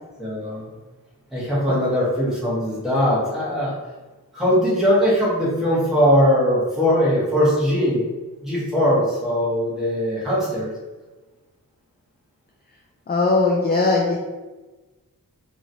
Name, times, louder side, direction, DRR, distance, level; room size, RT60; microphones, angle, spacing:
voice 1, 0.2-0.6 1.3-3.7 4.3-8.0 8.4-10.7, equal, ahead, -9 dB, 1.2 m, -20 dB
voice 2, 13.1-14.2, left 3 dB, 30° left, -1 dB, 0.4 m, -19 dB
3.0 x 2.6 x 2.7 m, 1.2 s
wide cardioid pair, 110°, 35 cm